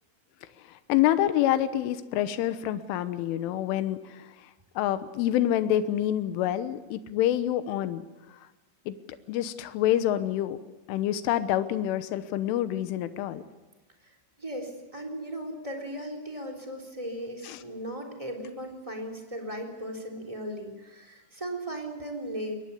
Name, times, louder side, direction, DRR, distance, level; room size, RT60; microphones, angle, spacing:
voice 1, 0.6-4.4 4.8-8.1 8.9-9.0 9.3-10.6 10.9-13.4 17.4-17.6, left 12 dB, 80° left, 11 dB, 3.5 m, -27 dB
voice 2, 14.4-22.6, right 1 dB, 10° right, 4 dB, 2.7 m, -37 dB
22.5 x 20.0 x 8.4 m, 1.2 s
omnidirectional pair, 5.8 m